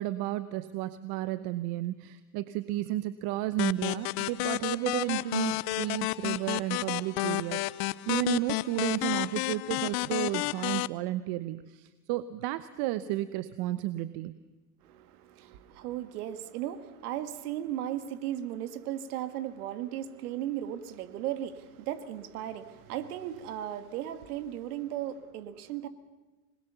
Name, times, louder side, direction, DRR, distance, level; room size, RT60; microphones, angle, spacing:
voice 1, 0.0-14.3, right 15 dB, 55° right, 1.1 m, -32 dB
sound 1, 3.6-10.9, left 20 dB, 55° left, 0.7 m, -31 dB
voice 2, 14.8-25.9, right 11 dB, 80° right, 2.1 m, -36 dB
26.0 x 21.0 x 7.0 m
supercardioid pair, 110°, 44 cm